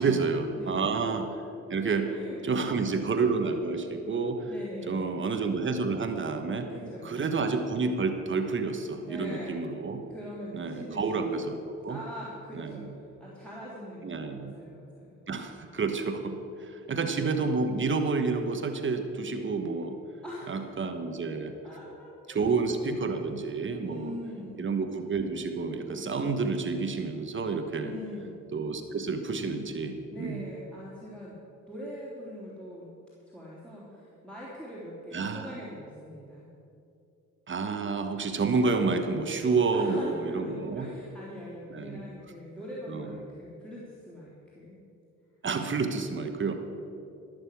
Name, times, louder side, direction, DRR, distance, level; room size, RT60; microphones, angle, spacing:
voice 1, 0.0-1.3 1.7-2.2 2.4-4.5 4.9-6.7 7.0-10.0 10.5-12.0 12.5-12.9 14.0-14.5 15.3-20.0 20.5-21.5 22.3-24.1 24.6-27.9 28.5-30.5 35.1-35.5 37.5-40.9 41.7-42.0 42.9-43.1 45.4-46.5, right 4 dB, 40° right, 6 dB, 1.3 m, -29 dB
voice 2, 0.5-0.9 1.7-2.4 2.8-2.9 3.9-4.1 4.5-5.1 6.7-7.4 9.0-9.6 10.1-11.5 11.9-14.0 14.3-15.2 20.2-20.8 21.6-22.9 23.6-24.7 27.8-28.4 30.1-31.3 31.7-32.9 33.3-36.5 39.7-44.8, equal, 5° left, -8 dB, 3.4 m, -43 dB
15.0 x 6.8 x 8.5 m, 2.6 s
cardioid pair, 90°, 30 cm